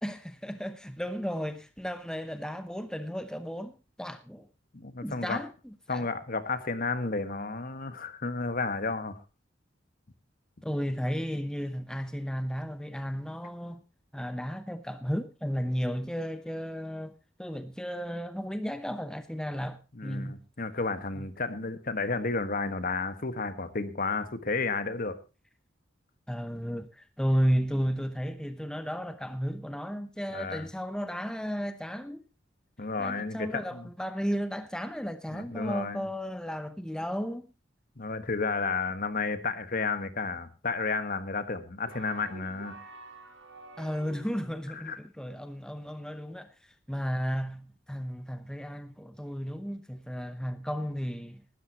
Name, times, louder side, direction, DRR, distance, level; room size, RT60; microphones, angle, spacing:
voice 1, 0.0-4.5 5.0-6.1 10.6-13.8 14.1-20.4 21.2-21.3 26.3-32.3 33.0-37.5 43.8-51.4, equal, 5° left, 0.8 m, -34 dB
voice 2, 4.7-5.4 5.9-9.2 19.9-25.2 30.3-30.7 32.8-33.9 35.3-36.1 38.0-42.8 44.7-45.0, left 4 dB, 45° left, 1.5 m, -32 dB
sound 1, 41.9-44.8, right 2 dB, 75° right, 3.4 m, -48 dB
19.0 x 12.5 x 2.9 m
head